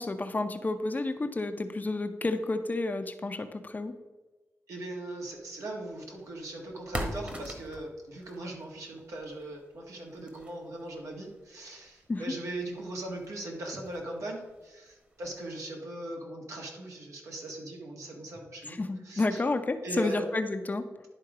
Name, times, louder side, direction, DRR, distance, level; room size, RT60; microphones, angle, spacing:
voice 1, 0.0-3.9 12.1-12.2 18.7-20.9, left 2 dB, 30° left, 8 dB, 0.7 m, -30 dB
voice 2, 4.7-19.4 19.8-20.2, right 1 dB, 75° right, 0 dB, 1.8 m, -39 dB
sound 1, 5.4-15.7, right 1 dB, 25° right, 1.4 m, -45 dB
10.5 x 3.7 x 4.9 m, 1.2 s
cardioid pair, 75°, 5 cm